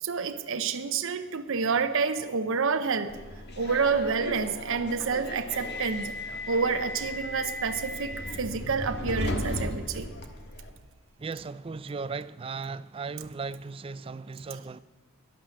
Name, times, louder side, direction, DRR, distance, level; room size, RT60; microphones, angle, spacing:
voice 1, 0.0-3.2 3.6-6.1 6.5-10.1, right 5 dB, 60° right, 0.7 m, -28 dB
Subway metro underground, 3.1-10.7, left 1 dB, 50° left, 1.5 m, -36 dB
voice 2, 11.2-14.8, right 4 dB, 25° right, 0.3 m, -37 dB
12.5 x 11.0 x 7.6 m
head